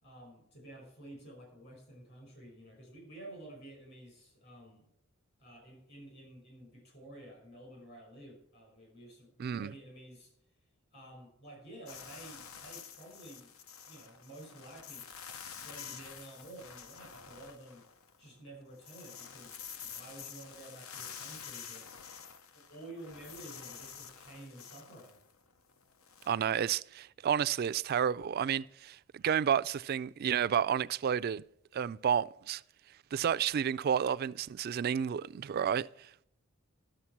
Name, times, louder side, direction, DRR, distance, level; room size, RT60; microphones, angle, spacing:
voice 1, 0.0-4.8 5.4-10.3 10.9-13.5 13.8-15.1 15.5-17.9 18.2-21.9 22.5-25.2, right 1 dB, 55° left, 5.3 m, -51 dB
voice 2, 9.4-9.7 26.3-31.4 31.7-32.6 33.1-36.1, right 8 dB, 45° right, 0.3 m, -31 dB
sound 1, 11.9-18.3 18.6-26.3, left 7 dB, 85° left, 0.8 m, -48 dB
12.5 x 6.7 x 5.9 m
head